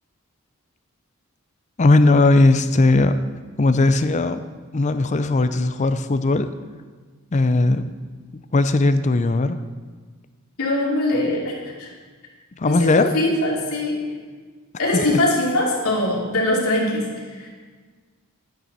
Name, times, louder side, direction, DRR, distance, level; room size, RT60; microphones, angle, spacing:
voice 1, 1.8-3.2 3.6-4.4 4.7-6.5 7.3-7.9 8.5-9.6 12.6-13.1 14.9-15.1, left 2 dB, 30° left, 10 dB, 0.5 m, -18 dB
voice 2, 10.6-11.9 12.6-14.0 14.8-17.5, left 1 dB, 80° left, -3 dB, 2.7 m, -22 dB
11.5 x 9.1 x 4.1 m, 1.5 s
head